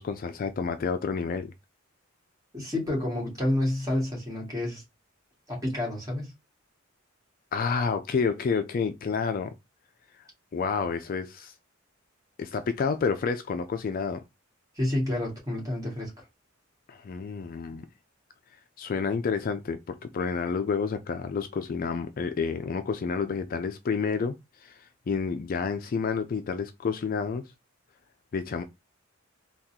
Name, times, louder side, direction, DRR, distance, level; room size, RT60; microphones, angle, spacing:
voice 1, 0.0-1.5 7.5-9.5 10.5-11.5 12.4-14.2 16.9-17.9 18.8-24.3 24.6-27.4 28.3-28.6, left 5 dB, 45° left, 0.3 m, -29 dB
voice 2, 2.5-4.8 5.5-6.3 14.8-16.1, left 1 dB, 15° right, 1.7 m, -29 dB
3.6 x 2.3 x 2.8 m
head